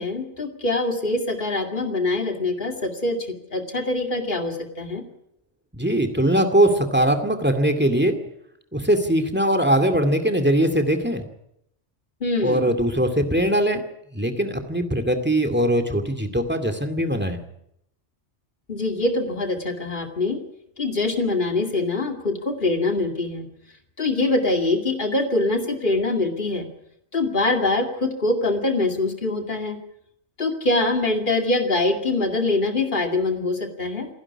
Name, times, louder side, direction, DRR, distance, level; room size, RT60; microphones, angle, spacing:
voice 1, 0.0-5.0 12.2-12.7 18.7-20.4 20.8-23.5 24.0-26.7 27.1-29.8 30.4-34.1, left 2 dB, 45° left, 4 dB, 2.6 m, -24 dB
voice 2, 5.7-8.2 8.7-11.2 12.4-13.8 14.1-17.4, right 1 dB, 10° right, 9 dB, 2.3 m, -21 dB
28.0 x 11.0 x 9.8 m, 0.78 s
omnidirectional pair, 1.2 m